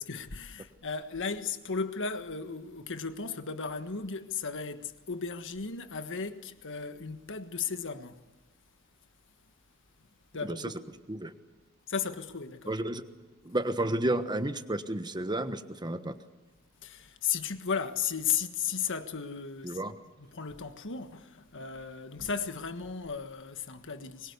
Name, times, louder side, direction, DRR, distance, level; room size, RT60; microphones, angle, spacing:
voice 1, 0.0-8.2 10.3-10.7 11.9-12.7 16.8-19.8 20.2-24.3, left 6 dB, 60° left, 1.5 m, -35 dB
voice 2, 12.7-13.0 13.4-16.2 19.6-20.0, right 1 dB, 20° right, 1.2 m, -31 dB
24.0 x 22.5 x 8.2 m
head